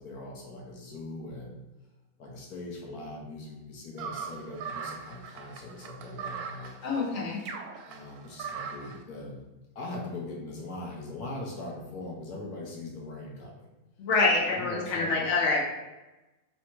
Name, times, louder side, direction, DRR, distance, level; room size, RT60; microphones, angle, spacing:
voice 1, 0.0-1.6 2.2-6.7 7.8-9.5 9.7-13.7 14.4-15.3, left 2 dB, 80° left, -2 dB, 1.4 m, -41 dB
sound 1, 4.0-9.0, right 6 dB, 75° right, 1.0 m, -39 dB
voice 2, 6.8-7.4 14.0-15.6, left 3 dB, 55° left, -3 dB, 1.2 m, -26 dB
3.4 x 2.8 x 4.4 m, 1.1 s
omnidirectional pair, 1.6 m